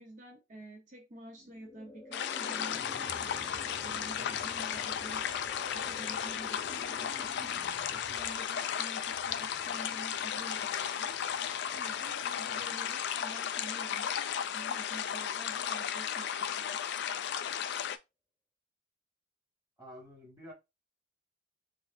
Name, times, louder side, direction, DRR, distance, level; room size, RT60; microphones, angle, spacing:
voice 1, 0.0-2.9 3.2-5.2 5.7-7.6 7.9-11.2 11.7-16.8, right 1 dB, 40° right, 0.9 m, -49 dB
sound 1, 1.3-12.4, left 1 dB, 20° left, 0.8 m, -51 dB
sound 2, 2.1-18.0, left 9 dB, 60° left, 0.3 m, -35 dB
voice 2, 12.5-12.8 19.8-20.5, equal, 20° right, 1.8 m, -50 dB
4.7 x 2.6 x 2.5 m
head